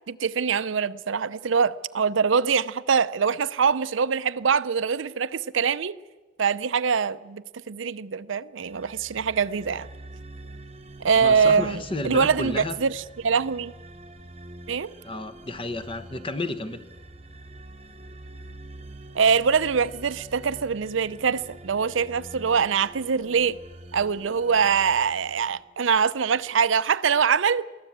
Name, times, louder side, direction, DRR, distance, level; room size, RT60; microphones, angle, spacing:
voice 1, 0.1-6.0 6.4-9.9 11.0-13.7 14.7-14.9 19.1-23.6 23.9-27.7, right 6 dB, 75° right, 0.6 m, -23 dB
sound 1, 8.6-25.8, right 2 dB, 30° right, 1.2 m, -45 dB
voice 2, 11.1-12.8 15.0-16.8, left 2 dB, 25° left, 1.1 m, -32 dB
22.5 x 15.5 x 8.7 m
head